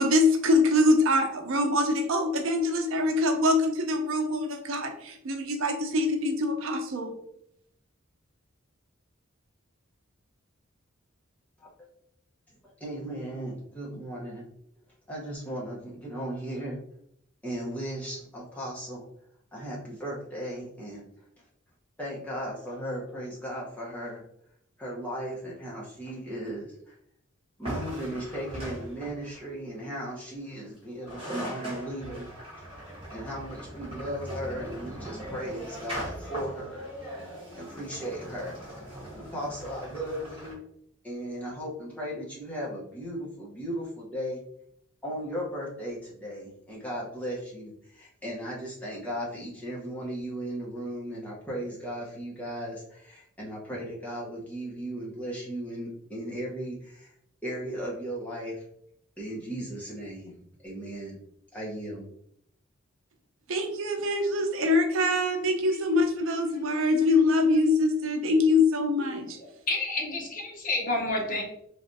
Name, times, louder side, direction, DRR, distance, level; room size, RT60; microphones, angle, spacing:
voice 1, 0.0-7.2 63.5-69.4, left 2 dB, 80° right, 5 dB, 0.5 m, -24 dB
voice 2, 12.8-14.5 15.1-16.8 17.4-19.1 19.5-21.0 22.0-24.2 24.8-26.9 27.6-32.3 33.1-36.9 37.5-38.6 39.1-40.6 41.0-44.4 45.0-57.1 57.4-58.6 59.2-60.3 60.6-61.2 61.5-62.1, equal, 10° left, -5 dB, 0.8 m, -36 dB
sound 1, 27.6-29.4 30.8-30.9 31.0-40.5, right 1 dB, 30° right, 1.2 m, -40 dB
voice 3, 69.7-71.4, left 2 dB, 45° left, 0 dB, 0.7 m, -29 dB
3.2 x 2.4 x 2.6 m, 0.72 s
head